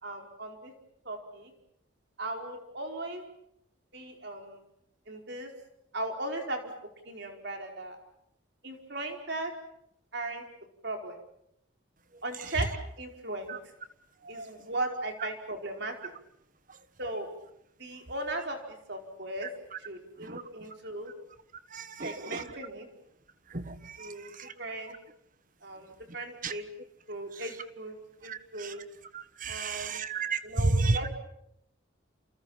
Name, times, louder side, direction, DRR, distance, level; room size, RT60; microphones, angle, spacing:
voice 1, 0.0-0.7 1.0-1.5 2.2-3.2 3.9-4.6 5.1-5.5 5.9-6.7 7.0-8.0 8.6-9.5 10.1-10.4 10.8-11.2 12.2-12.7 13.0-13.6 14.3-15.9 17.0-17.3 17.8-19.5 19.8-21.1 22.0-22.9 24.0-24.3 24.6-24.9 25.6-26.6 27.1-28.0 28.2-28.8 29.5-30.0 30.4-31.1, right 2 dB, 55° right, 3 dB, 4.9 m, -37 dB
voice 2, 21.7-22.4 23.5-24.5 26.4-26.5 28.2-28.7 29.1-31.1, right 3 dB, 40° right, 12 dB, 1.4 m, -32 dB
29.0 x 28.5 x 5.8 m, 0.77 s
head